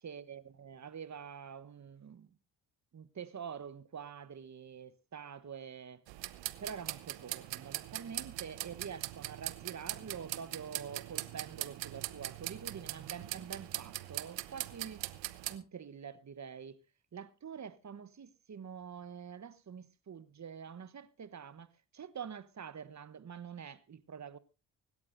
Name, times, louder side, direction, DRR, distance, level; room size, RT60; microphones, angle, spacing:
voice 1, 0.0-2.3 2.9-6.0 6.6-15.1 15.5-16.8 17.1-21.7 21.9-24.4, right 7 dB, 35° right, 1.1 m, -46 dB
sound 1, 6.1-15.6, right 17 dB, 70° right, 0.9 m, -41 dB
25.0 x 12.0 x 2.6 m
hypercardioid pair, 45°, 46 cm